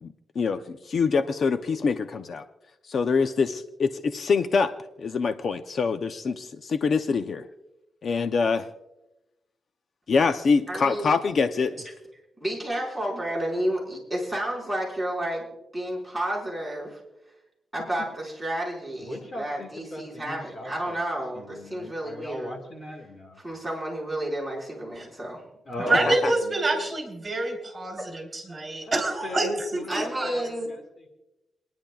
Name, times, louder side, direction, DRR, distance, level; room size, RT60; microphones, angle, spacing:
voice 1, 0.0-2.4 2.8-4.7 5.0-7.5 8.0-8.7 10.1-11.9 25.9-26.3, left 5 dB, 55° left, 8 dB, 0.6 m, -25 dB
voice 2, 10.7-11.1 12.4-15.4 15.7-17.0 17.7-22.6 23.4-25.4 25.8-25.9 29.9-30.7, right 1 dB, ahead, -4 dB, 4.8 m, -31 dB
voice 3, 19.0-21.0 21.3-23.4 25.7-26.7 28.8-28.9 29.2-31.2, left 1 dB, 35° left, 3 dB, 1.7 m, -38 dB
voice 4, 25.9-30.3, right 2 dB, 30° right, 3 dB, 3.4 m, -27 dB
29.0 x 10.5 x 2.3 m, 0.97 s
wide cardioid pair, 125°, 0 cm